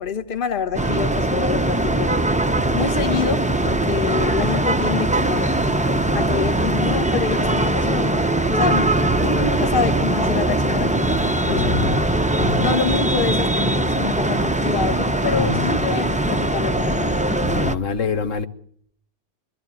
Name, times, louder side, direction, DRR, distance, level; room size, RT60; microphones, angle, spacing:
voice 1, 0.0-2.2 2.7-5.5 6.1-9.0 9.2-12.0 12.6-17.3, left 6 dB, 45° left, 1.2 m, -27 dB
sound 1, 0.7-17.7, right 2 dB, 10° right, 0.6 m, -21 dB
voice 2, 11.5-11.9 12.4-12.6 15.3-15.7 17.4-18.5, left 6 dB, 80° left, 1.4 m, -25 dB
23.0 x 13.0 x 8.9 m
omnidirectional pair, 1.3 m